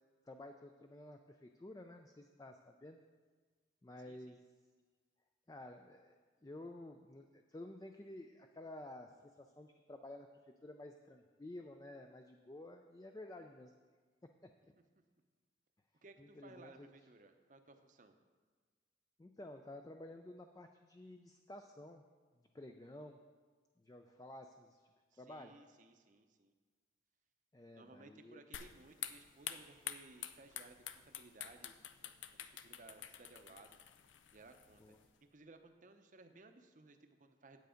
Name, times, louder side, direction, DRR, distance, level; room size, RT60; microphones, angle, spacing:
voice 1, 0.2-3.0 3.8-4.5 5.5-13.7 14.2-14.5 16.2-16.9 19.2-22.0 22.4-23.2 23.8-24.9 25.1-25.6 27.5-28.4 34.8-35.0, left 1 dB, 20° left, 5 dB, 0.4 m, -52 dB
voice 2, 16.0-18.2 25.1-26.5 27.7-32.1 32.4-33.8 34.3-35.0 35.2-37.6, right 3 dB, 45° right, 7 dB, 0.7 m, -60 dB
sound 1, 28.5-35.1, left 10 dB, 80° left, 0.5 m, -49 dB
9.3 x 8.0 x 5.0 m, 1.5 s
head